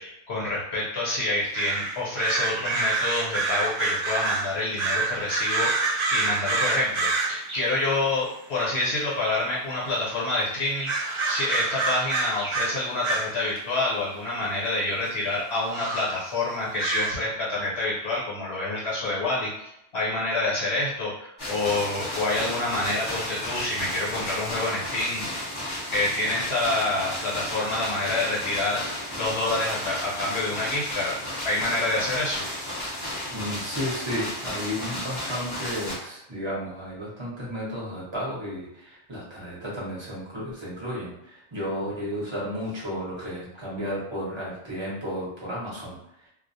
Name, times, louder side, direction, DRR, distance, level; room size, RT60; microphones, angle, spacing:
voice 1, 0.0-10.9 11.3-25.3 25.9-28.8 29.2-31.2 31.4-32.4, left 2 dB, 70° left, -5 dB, 1.1 m, -27 dB
sound 1, 1.5-7.8 8.8-8.9 9.2-9.6 10.3-10.4 10.8-13.6 14.2-14.3 15.0-15.1 15.7-16.1 16.8-17.1, right 3 dB, 45° right, 0.4 m, -27 dB
sound 2, 21.4-36.0, left 1 dB, 25° left, 0.7 m, -33 dB
voice 2, 33.3-46.3, equal, 25° right, -7 dB, 0.9 m, -33 dB
2.4 x 2.0 x 2.6 m, 0.82 s
omnidirectional pair, 1.1 m